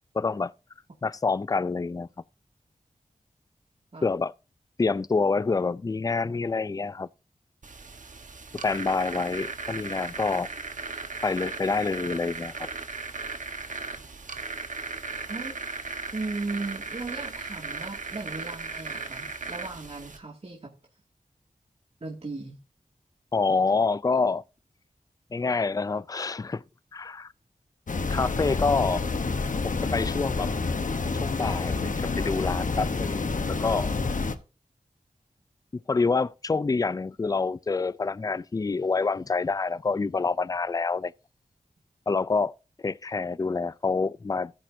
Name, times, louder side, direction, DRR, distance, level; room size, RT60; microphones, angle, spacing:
voice 1, 0.1-0.5 1.0-2.1 4.0-4.3 4.8-7.1 8.6-10.5 11.2-12.7 23.3-24.4 25.3-26.6 26.9-27.3 28.1-29.1 29.6-30.5 31.2-33.9 35.9-41.1 42.1-42.5 42.8-44.5, left 4 dB, 25° left, 0.4 m, -27 dB
sound 1, 7.6-20.2, right 4 dB, 60° right, 1.2 m, -37 dB
voice 2, 15.3-15.6 16.1-20.7 22.0-22.6, right 3 dB, 45° right, 2.2 m, -36 dB
sound 2, 27.9-34.3, left 3 dB, 65° left, 1.0 m, -28 dB
14.5 x 8.8 x 2.7 m
cardioid pair, 50°, 15 cm